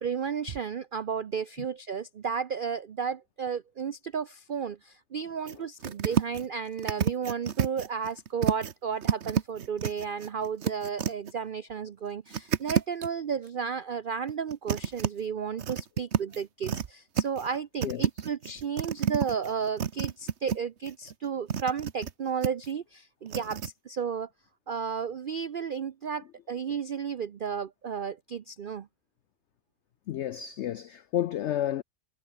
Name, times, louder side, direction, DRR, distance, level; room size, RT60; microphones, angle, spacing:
voice 1, 0.0-24.3 24.7-28.9, right 6 dB, 80° right, 0.4 m, -33 dB
sound 1, 5.5-5.6 5.8-6.5 6.8-8.7 9.0-11.3 12.3-13.1 14.3-15.1 15.6-16.8 17.1-17.6 17.8-20.6 20.8-22.1 22.4-22.7 23.3-23.7, right 7 dB, 50° right, 1.2 m, -29 dB
voice 2, 17.8-18.3 30.1-31.8, left 11 dB, 80° left, 0.6 m, -31 dB
omnidirectional pair, 1.7 m